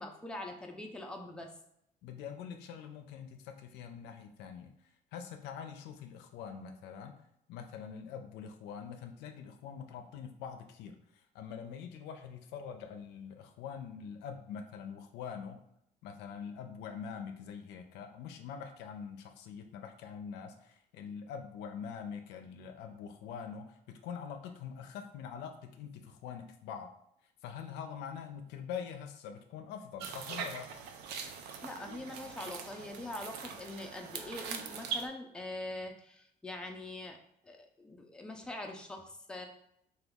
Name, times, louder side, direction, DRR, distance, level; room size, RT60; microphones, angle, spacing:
voice 1, 0.0-1.5 31.6-37.2 37.4-39.5, left 2 dB, 5° left, 2 dB, 0.4 m, -43 dB
voice 2, 2.0-4.7 5.1-7.2 7.5-15.6 16.0-26.9 27.4-30.7, left 7 dB, 90° left, 6 dB, 0.4 m, -44 dB
sound 1, 30.0-35.1, right 6 dB, 75° right, 0.4 m, -42 dB
2.9 x 2.3 x 3.5 m, 0.75 s
cardioid pair, 110°, 17 cm